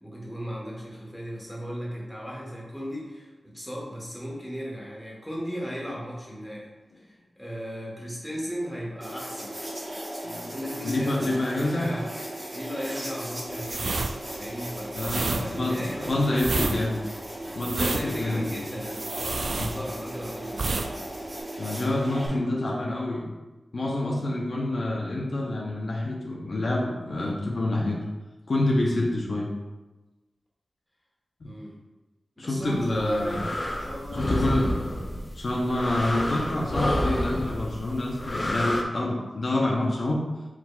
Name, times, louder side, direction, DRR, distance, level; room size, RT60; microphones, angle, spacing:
voice 1, 0.0-6.7 6.9-9.6 10.5-12.1 12.5-14.1 14.4-16.8 17.8-20.9 21.6-23.0 31.4-31.8 32.4-34.5, equal, 5° left, -4 dB, 1.2 m, -36 dB
sound 1, 9.0-22.3, right 1 dB, 30° right, 1.2 m, -37 dB
voice 2, 10.8-11.9 14.9-17.0 17.5-18.5 19.6-19.7 21.6-23.3 23.7-28.0 28.5-29.5 31.4-31.5 32.4-33.4 34.2-34.7 35.3-40.3, left 1 dB, 60° left, -3 dB, 0.7 m, -27 dB
sound 2, 13.6-20.2 20.5-20.9 21.2-21.4, right 3 dB, 75° right, 0.3 m, -30 dB
sound 3, 32.8-38.8, left 1 dB, 30° left, 0.5 m, -29 dB
4.7 x 4.0 x 2.3 m, 1.1 s
wide cardioid pair, 95°, 0 cm